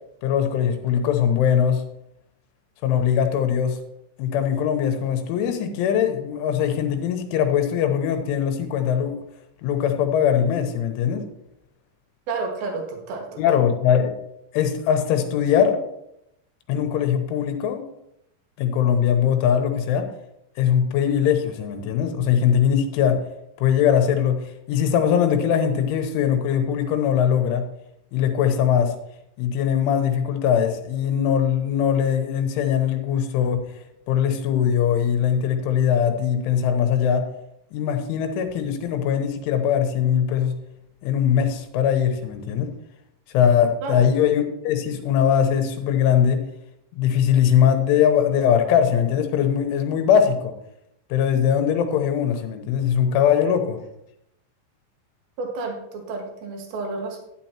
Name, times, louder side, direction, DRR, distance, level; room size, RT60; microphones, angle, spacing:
voice 1, 0.2-1.8 2.8-3.8 4.2-9.2 9.6-11.3 13.4-14.1 14.5-15.8 16.7-17.8 18.6-20.1 20.6-23.2 23.6-27.7 28.1-28.9 29.4-33.6 34.1-37.3 37.7-40.6 41.0-42.7 43.3-46.4 46.9-50.5 51.1-53.8, left 8 dB, 85° left, 5 dB, 3.4 m, -21 dB
voice 2, 12.3-13.6 43.8-44.0 55.4-57.2, right 3 dB, 60° right, 2 dB, 3.2 m, -31 dB
11.5 x 10.5 x 2.9 m, 0.80 s
omnidirectional pair, 5.5 m